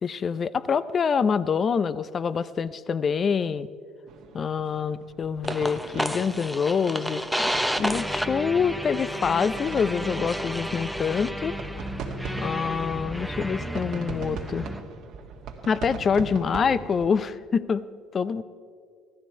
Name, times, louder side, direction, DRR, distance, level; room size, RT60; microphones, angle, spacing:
voice 1, 0.0-3.7 4.3-7.5 7.8-11.6 12.4-14.7 15.6-17.8 18.1-18.4, left 6 dB, 40° left, 16 dB, 0.5 m, -26 dB
sound 1, 4.1-17.1, right 4 dB, 60° right, 1.7 m, -41 dB
sound 2, 5.5-14.8, equal, ahead, 0.7 m, -31 dB
14.5 x 12.5 x 4.6 m, 2.1 s
hypercardioid pair, 70°, 0 cm